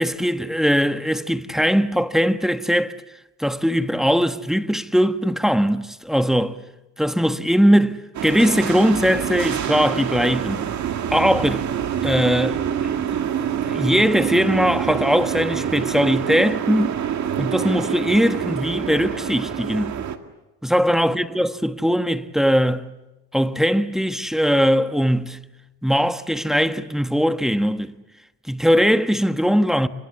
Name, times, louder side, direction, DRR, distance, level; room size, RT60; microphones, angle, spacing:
voice 1, 0.0-2.9 3.4-6.6 7.0-10.7 11.1-11.7 12.0-12.6 13.0-17.0 17.4-20.0 20.6-22.9 23.3-25.4 25.8-27.9 28.5-29.9, equal, ahead, 1.3 m, -20 dB
sound 1, 8.1-20.2, right 9 dB, 65° right, 2.2 m, -26 dB
30.0 x 25.0 x 7.3 m
cardioid pair, 90°, 30 cm